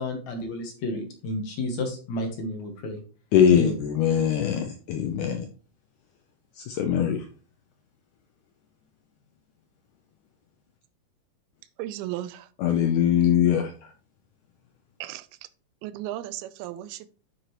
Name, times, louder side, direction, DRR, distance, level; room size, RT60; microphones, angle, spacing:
voice 1, 0.0-3.0 3.5-3.7, left 1 dB, 60° left, 2.1 m, -31 dB
voice 2, 3.3-5.5 6.6-7.3 12.6-13.9, left 9 dB, 80° left, 1.8 m, -22 dB
voice 3, 11.8-12.5 15.0-15.5 15.8-17.1, right 14 dB, 85° right, 2.5 m, -35 dB
9.4 x 5.9 x 3.1 m
omnidirectional pair, 4.3 m